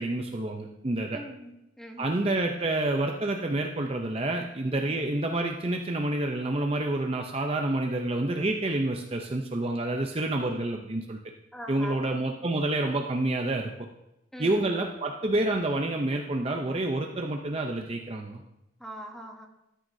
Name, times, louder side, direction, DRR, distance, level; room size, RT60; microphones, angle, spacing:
voice 1, 0.0-1.2 2.0-11.2 11.7-13.7 14.4-18.4, right 2 dB, 30° right, 2 dB, 0.6 m, -28 dB
voice 2, 1.1-2.1 4.8-4.9 11.5-12.0 14.3-14.6 18.8-19.5, equal, ahead, 2 dB, 1.1 m, -42 dB
13.0 x 9.2 x 2.7 m, 0.88 s
head